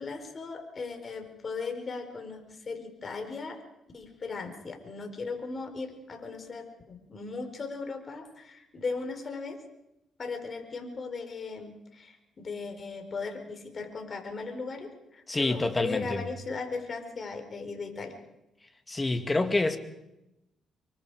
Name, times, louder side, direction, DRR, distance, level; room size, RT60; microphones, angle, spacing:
voice 1, 0.0-3.6 3.9-9.6 10.2-18.1, left 4 dB, 40° left, 5 dB, 4.8 m, -37 dB
voice 2, 15.3-16.3 18.9-19.8, left 2 dB, 20° left, 7 dB, 2.4 m, -27 dB
25.5 x 23.5 x 5.1 m, 0.89 s
cardioid pair, 90°, 0 cm